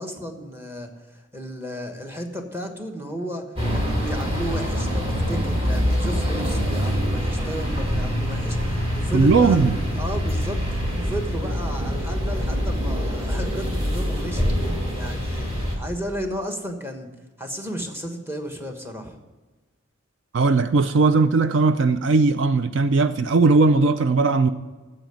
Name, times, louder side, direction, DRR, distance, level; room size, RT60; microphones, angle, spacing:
voice 1, 0.0-14.4 14.9-17.1 17.4-19.2, equal, 10° right, 1.3 m, -33 dB
sound 1, 3.6-15.8, equal, 30° right, 2.5 m, -25 dB
voice 2, 9.1-9.7 20.3-24.5, right 3 dB, 65° right, 0.4 m, -18 dB
9.1 x 7.7 x 9.2 m
head